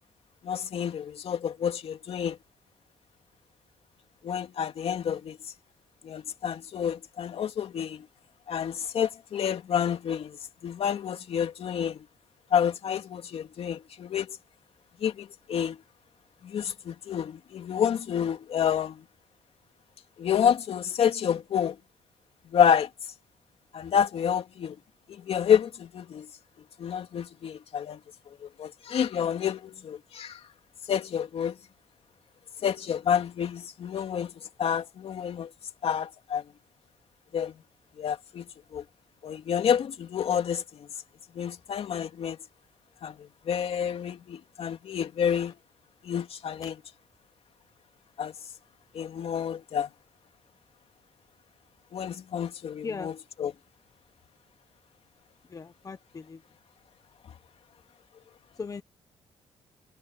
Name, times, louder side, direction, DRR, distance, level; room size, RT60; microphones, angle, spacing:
voice 1, 0.4-2.4 4.2-5.5 6.0-8.1 8.5-12.0 12.5-14.4 15.0-15.8 16.4-19.0 20.2-21.8 22.5-22.9 23.7-24.8 25.1-26.3 26.8-28.0 28.3-30.4 30.9-31.6 32.6-34.3 34.6-35.5 35.8-36.4 37.3-37.5 38.0-38.8 39.2-40.9 41.3-42.4 43.0-45.6 46.0-46.8 48.2-48.3 48.9-49.9 51.9-53.5, left 8 dB, 55° left, 2.7 m, -29 dB
voice 2, 55.5-56.4 58.6-58.8, left 5 dB, 30° left, 0.9 m, -38 dB
cardioid pair, 105°, 12 cm